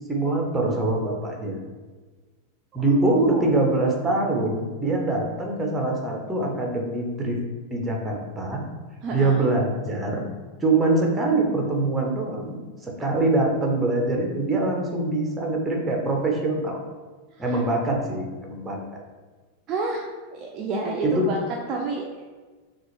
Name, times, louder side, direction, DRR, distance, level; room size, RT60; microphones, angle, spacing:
voice 1, 0.1-1.6 2.7-7.4 7.7-8.6 9.1-10.2 10.6-16.8 17.4-19.0 21.0-21.3, right 2 dB, 10° right, 1 dB, 1.0 m, -24 dB
voice 2, 2.7-3.5 9.0-9.5 17.4-17.6 19.7-21.4 21.7-22.1, right 3 dB, 30° right, -2 dB, 0.5 m, -30 dB
5.9 x 2.5 x 3.3 m, 1.3 s
figure-of-eight pair, 90°, 0 cm